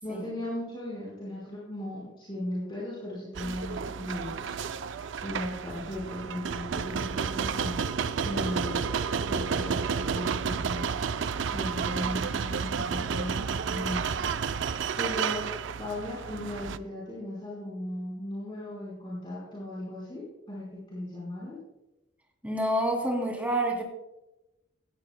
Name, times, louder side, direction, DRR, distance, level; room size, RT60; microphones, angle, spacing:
voice 1, 0.0-4.5 5.2-7.9 8.2-8.8 9.1-10.9 11.5-14.3 15.0-21.6, left 1 dB, 25° left, -7 dB, 4.4 m, -37 dB
sound 1, 3.3-16.8, right 6 dB, 70° right, 0.4 m, -31 dB
voice 2, 22.4-23.8, right 1 dB, 10° right, 1 dB, 2.4 m, -28 dB
17.0 x 15.0 x 2.2 m, 0.95 s
head